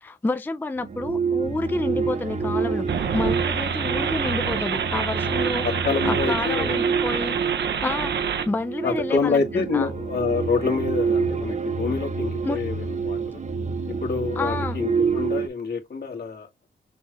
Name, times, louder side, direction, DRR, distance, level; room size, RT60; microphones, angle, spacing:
voice 1, 0.0-2.9 3.1-5.7 6.0-7.4 7.8-9.9 12.4-12.6 14.4-14.8, left 2 dB, 10° left, 0.4 m, -29 dB
sound 1, 0.8-15.5, right 5 dB, 40° right, 0.8 m, -28 dB
sound 2, 2.9-8.5, right 7 dB, 80° right, 0.7 m, -27 dB
voice 2, 5.3-6.8 8.8-13.4 14.0-16.5, left 4 dB, 65° left, 1.8 m, -27 dB
6.1 x 2.4 x 3.1 m
wide cardioid pair, 105°, 18 cm